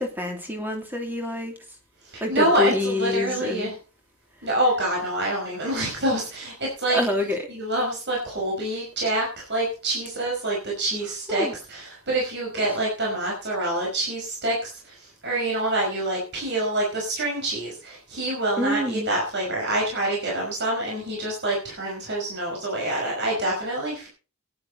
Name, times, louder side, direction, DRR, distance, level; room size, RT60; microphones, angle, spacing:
voice 1, 0.0-1.5 2.2-3.7 6.9-7.4 11.3-11.5 18.6-19.1, left 2 dB, 10° right, 2 dB, 2.8 m, -26 dB
voice 2, 2.1-3.8 4.4-24.1, right 1 dB, 50° right, -2 dB, 5.4 m, -26 dB
17.5 x 10.5 x 4.1 m, 0.35 s
head